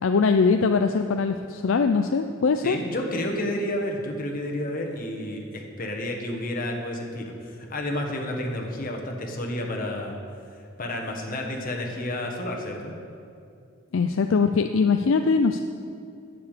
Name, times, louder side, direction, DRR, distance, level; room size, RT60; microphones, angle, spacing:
voice 1, 0.0-2.8 13.9-15.6, left 4 dB, 65° left, 7 dB, 0.4 m, -22 dB
voice 2, 2.6-10.2 10.8-12.9, left 1 dB, 45° left, 1 dB, 1.4 m, -30 dB
9.5 x 7.0 x 8.3 m, 2.4 s
head